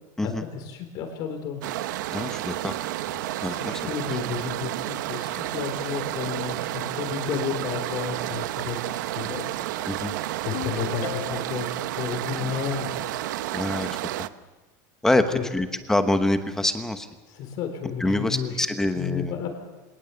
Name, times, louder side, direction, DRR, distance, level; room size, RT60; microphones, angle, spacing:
voice 1, 0.2-1.6 3.4-9.5 10.4-12.9 15.1-15.4 17.3-18.6 19.0-19.5, left 7 dB, 45° left, 5 dB, 3.9 m, -32 dB
sound 1, 1.6-14.3, right 15 dB, 85° right, 0.8 m, -31 dB
voice 2, 2.1-2.7 3.4-3.7 9.9-10.1 12.4-12.5 13.5-14.3 15.0-17.1 18.0-19.4, left 2 dB, 5° left, 8 dB, 1.0 m, -25 dB
Ringtone, 10.5-11.7, left 15 dB, 60° left, 1.2 m, -35 dB
25.0 x 19.0 x 7.0 m, 1.2 s
supercardioid pair, 165°, 10 cm